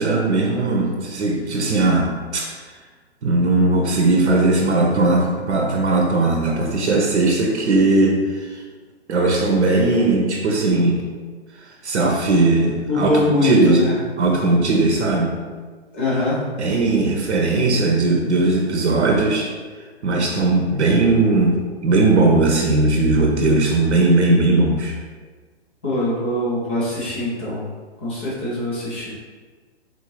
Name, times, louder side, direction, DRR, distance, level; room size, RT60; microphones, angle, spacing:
voice 1, 0.0-2.7 3.2-8.6 9.1-11.0 11.5-13.1 13.4-13.8 14.2-15.4 16.6-19.5 20.0-24.9, right 2 dB, 80° right, 0 dB, 0.7 m, -18 dB
voice 2, 12.9-13.9 15.9-16.4 25.8-27.6 28.0-29.1, left 2 dB, 10° left, -7 dB, 0.3 m, -22 dB
3.8 x 2.5 x 3.0 m, 1.4 s
hypercardioid pair, 135°, 33 cm